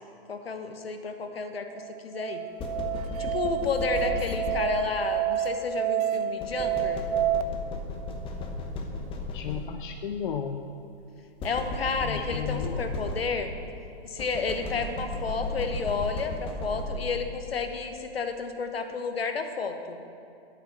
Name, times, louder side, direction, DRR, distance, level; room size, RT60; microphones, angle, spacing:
voice 1, 0.3-1.7 2.0-2.4 3.2-7.0 11.4-13.5 14.0-20.0, left 4 dB, 65° left, 7 dB, 1.2 m, -31 dB
Musical instrument, 1.7-7.4, right 11 dB, 40° right, 0.5 m, -29 dB
sound 1, 2.6-5.1 6.4-10.0 11.4-13.6 14.2-17.3, left 2 dB, 15° left, 1.0 m, -35 dB
voice 2, 9.3-10.7 12.0-12.9, left 7 dB, 50° left, 6 dB, 0.6 m, -34 dB
10.5 x 8.9 x 6.8 m, 2.7 s
figure-of-eight pair, 110°, 32 cm